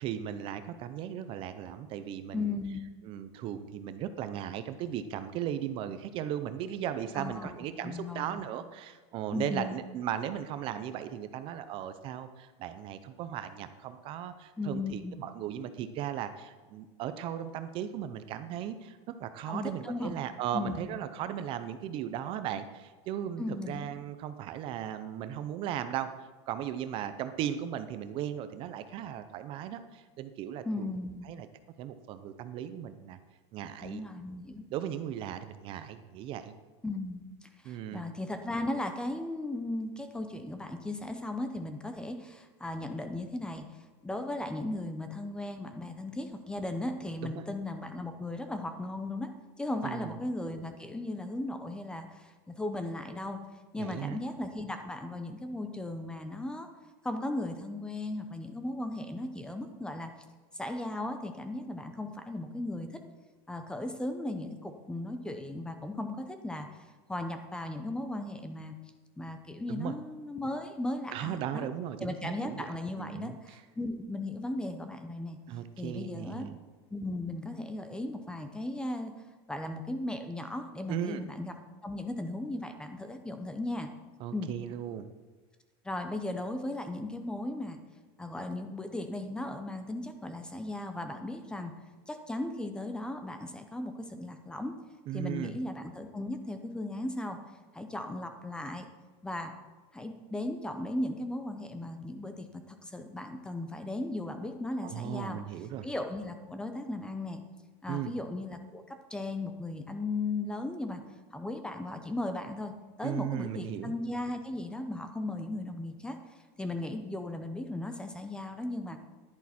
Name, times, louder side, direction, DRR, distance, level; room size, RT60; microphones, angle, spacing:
voice 1, 0.0-2.5 3.0-26.1 26.5-30.9 31.2-31.5 31.8-33.2 33.5-34.1 34.7-36.5 37.6-38.0 47.2-47.4 49.8-50.1 53.8-54.2 69.7-69.9 71.1-72.7 73.0-73.6 75.5-76.6 80.9-81.2 84.2-85.1 95.1-95.6 104.8-105.9 107.9-108.1 113.0-113.9, right 10 dB, 35° right, 11 dB, 0.6 m, -37 dB
voice 2, 2.3-2.8 7.1-7.5 7.8-8.4 9.3-9.7 14.6-15.2 19.5-20.2 20.5-21.0 23.4-23.9 30.6-31.3 33.8-34.7 36.8-43.6 44.0-49.3 49.6-53.4 53.7-56.7 57.0-60.1 60.5-63.0 63.5-68.8 69.2-71.7 72.0-75.4 75.8-76.5 76.9-79.1 79.5-81.5 81.8-83.9 84.3-84.5 85.8-87.8 88.2-91.7 92.1-94.7 95.1-97.4 97.7-98.9 99.2-99.5 99.9-105.4 105.8-107.4 107.8-111.0 111.3-112.7 113.0-116.2 116.6-119.0, left 2 dB, 5° left, 7 dB, 0.6 m, -36 dB
10.5 x 10.5 x 4.3 m, 1.3 s
supercardioid pair, 160°, 15 cm